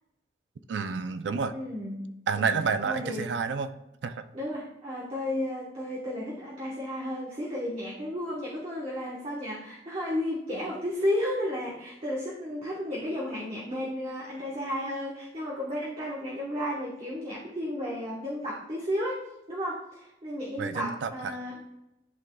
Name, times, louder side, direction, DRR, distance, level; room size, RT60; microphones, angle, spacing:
voice 1, 0.7-1.5 2.3-3.7 4.0-4.2 20.6-21.3, right 5 dB, 85° right, 10 dB, 0.4 m, -29 dB
voice 2, 1.5-2.0 2.3-2.5 2.8-3.3 4.3-21.5, left 1 dB, 35° right, -5 dB, 1.1 m, -33 dB
11.5 x 3.8 x 2.2 m, 0.89 s
head